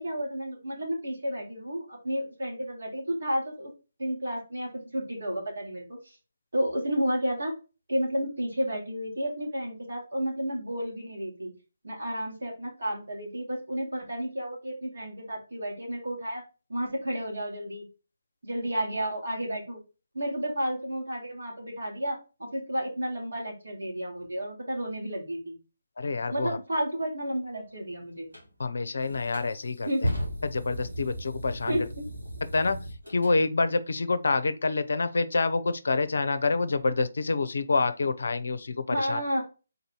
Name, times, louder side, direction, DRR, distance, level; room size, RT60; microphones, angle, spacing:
voice 1, 0.0-3.7 4.0-6.0 6.5-7.5 7.9-11.5 11.8-16.4 16.7-17.9 18.4-19.8 20.1-25.6 26.3-28.3 29.8-30.1 31.7-32.1 38.9-39.4, equal, 70° right, 2.2 m, -31 dB
voice 2, 26.0-26.6 28.6-29.9 30.4-31.9 32.5-32.8 33.1-39.2, left 3 dB, 60° left, 0.5 m, -27 dB
sound 1, 28.3-28.5 29.1-33.4, equal, 90° right, 1.7 m, -35 dB
4.0 x 2.7 x 4.4 m
figure-of-eight pair, 145°, 0 cm